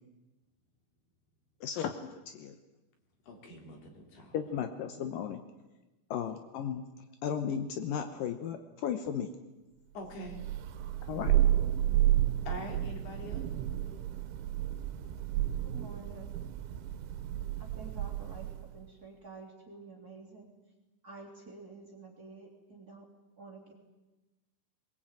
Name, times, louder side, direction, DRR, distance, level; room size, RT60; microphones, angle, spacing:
voice 1, 1.6-2.6 4.3-5.4 6.1-6.9 7.2-9.3 11.1-11.4, left 8 dB, 75° left, 2.0 m, -35 dB
voice 2, 3.3-4.4 9.9-10.4 12.5-13.5, left 1 dB, 60° left, 5.4 m, -44 dB
Thunder, 10.3-18.7, right 12 dB, 85° right, 3.5 m, -31 dB
voice 3, 15.6-16.3 17.6-20.5 21.0-23.1 23.4-23.7, right 3 dB, 20° right, 3.3 m, -49 dB
22.0 x 21.5 x 9.1 m
omnidirectional pair, 5.4 m